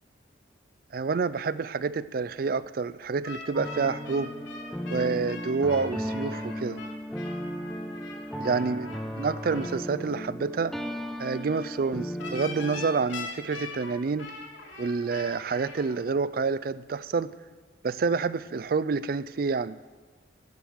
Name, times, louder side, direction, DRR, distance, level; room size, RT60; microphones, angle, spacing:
voice 1, 0.9-4.3 4.9-6.8 8.4-8.9 9.2-10.7 11.2-14.3 14.8-17.3 17.8-19.8, right 4 dB, 50° right, 17 dB, 0.4 m, -28 dB
sound 1, 3.2-9.7 12.2-15.8, left 4 dB, 85° left, 2.9 m, -42 dB
sound 2, 3.5-13.0, equal, ahead, 0.7 m, -36 dB
14.0 x 9.3 x 6.5 m, 1.4 s
head